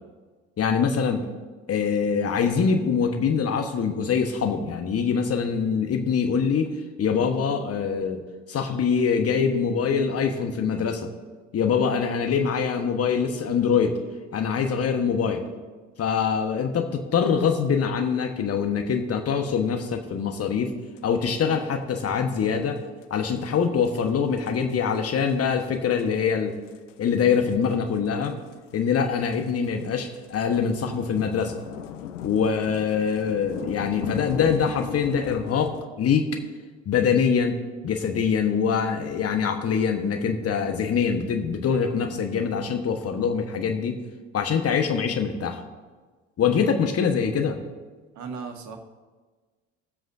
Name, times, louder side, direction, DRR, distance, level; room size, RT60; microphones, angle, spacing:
voice 1, 0.6-1.2 1.7-8.2 8.5-11.1 11.5-14.0 14.3-15.5 16.0-20.7 21.0-22.8 23.1-26.5 27.0-28.4 28.7-31.6 32.2-36.4 36.8-37.6 37.8-44.0 44.3-45.6 46.4-47.6, left 6 dB, 40° left, 5 dB, 1.3 m, -24 dB
sound 1, 21.0-21.1 22.8-22.9 23.0-23.1 23.4-23.5 23.9-24.1 24.4-25.0 25.3-25.6 25.9-26.1 26.7-35.9, left 10 dB, 75° left, 0.6 m, -37 dB
voice 2, 48.1-48.8, right 5 dB, 50° right, 4 dB, 1.6 m, -36 dB
21.0 x 7.7 x 2.7 m, 1.4 s
hypercardioid pair, 60°, 37 cm